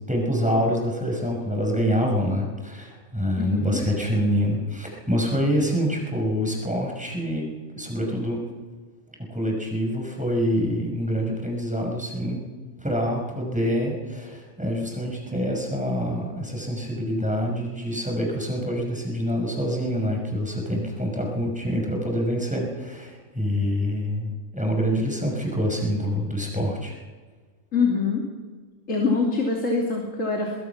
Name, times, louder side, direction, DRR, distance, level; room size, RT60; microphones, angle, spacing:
voice 1, 0.1-8.4 9.3-12.4 12.8-27.0, equal, 5° right, 0 dB, 5.8 m, -26 dB
voice 2, 3.4-3.8 27.7-28.2 28.9-30.6, left 4 dB, 80° left, -1 dB, 3.3 m, -24 dB
23.5 x 21.5 x 6.0 m, 1.5 s
omnidirectional pair, 1.3 m